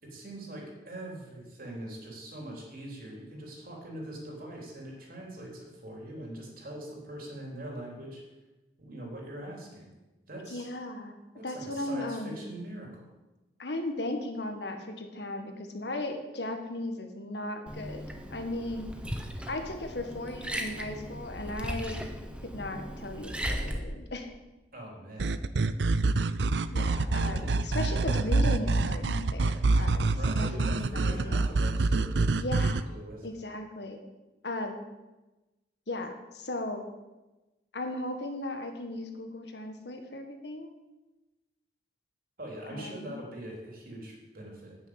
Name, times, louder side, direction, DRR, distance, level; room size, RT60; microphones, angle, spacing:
voice 1, 0.0-8.2 8.8-9.9 10.3-10.7 11.3-13.1 24.7-25.3 27.2-28.3 30.0-32.4 32.6-33.3 42.4-44.8, right 1 dB, 50° right, -1 dB, 3.8 m, -42 dB
voice 2, 10.5-11.2 11.4-12.4 13.6-18.0 18.3-18.9 19.5-22.1 22.4-24.3 26.7-30.1 30.4-31.6 32.4-32.8 33.2-34.0 34.4-34.8 35.9-36.8 37.7-40.7 42.7-43.1, left 1 dB, 65° left, 5 dB, 1.7 m, -36 dB
Liquid, 17.7-23.8, equal, 5° right, 1.1 m, -37 dB
sound 1, 25.2-32.8, right 3 dB, 70° right, 0.6 m, -26 dB
9.7 x 9.4 x 8.2 m, 1.1 s
head